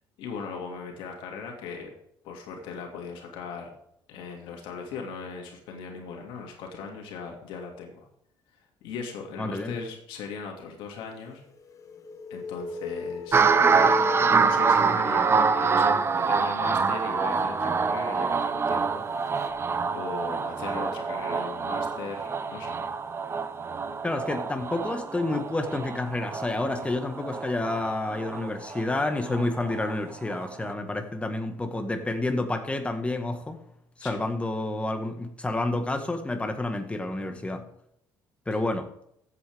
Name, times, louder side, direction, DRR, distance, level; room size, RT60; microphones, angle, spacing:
voice 1, 0.2-1.9 2.2-3.7 4.1-8.1 8.8-11.4 12.3-13.5 14.3-19.0 19.9-22.8 34.0-34.2, left 5 dB, 80° left, 1 dB, 2.5 m, -38 dB
voice 2, 9.4-9.8 24.0-33.6 34.0-37.6 38.5-38.9, left 2 dB, 15° left, 6 dB, 1.6 m, -29 dB
sound 1, 11.4-16.1 19.4-19.5, left 3 dB, 40° left, 1.4 m, -36 dB
sound 2, 13.3-29.9 30.3-30.7, right 5 dB, 30° right, 0.8 m, -26 dB
14.5 x 8.3 x 3.6 m, 0.74 s
cardioid pair, 95°, 8 cm